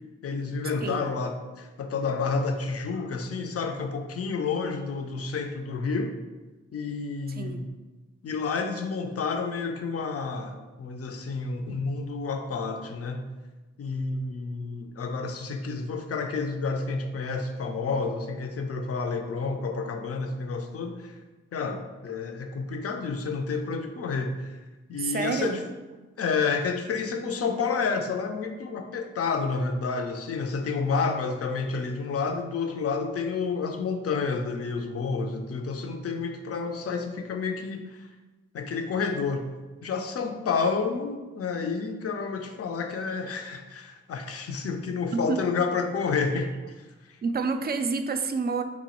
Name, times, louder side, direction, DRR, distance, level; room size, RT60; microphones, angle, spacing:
voice 1, 0.2-6.1 6.7-7.6 8.2-13.3 13.8-21.1 21.5-24.6 24.9-25.6 26.2-38.1 38.5-39.5 39.8-46.5, left 4 dB, 55° left, 5 dB, 0.5 m, -30 dB
voice 2, 0.8-1.1 7.4-7.7 25.0-25.6 45.1-45.4 47.2-48.6, right 4 dB, 35° right, 8 dB, 0.4 m, -28 dB
3.0 x 2.2 x 4.2 m, 1.2 s
supercardioid pair, 45°, 29 cm